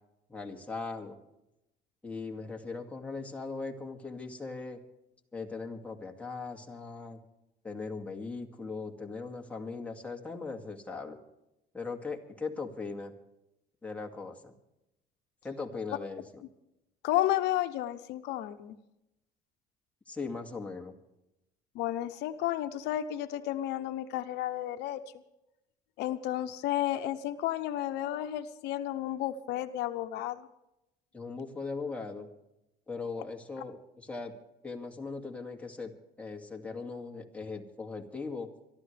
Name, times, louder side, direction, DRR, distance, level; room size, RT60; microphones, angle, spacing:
voice 1, 0.3-1.2 2.0-4.8 5.3-7.2 7.6-11.2 11.7-13.1 13.8-14.5 15.4-16.4 20.1-20.9 31.1-32.3 32.9-34.3 34.6-35.9 36.2-38.5, left 4 dB, 10° left, 1 dB, 2.4 m, -39 dB
voice 2, 17.0-18.8 21.7-25.0 26.0-30.5, left 13 dB, 90° left, 9 dB, 0.9 m, -32 dB
24.5 x 13.0 x 3.4 m, 0.87 s
cardioid pair, 110°, 17 cm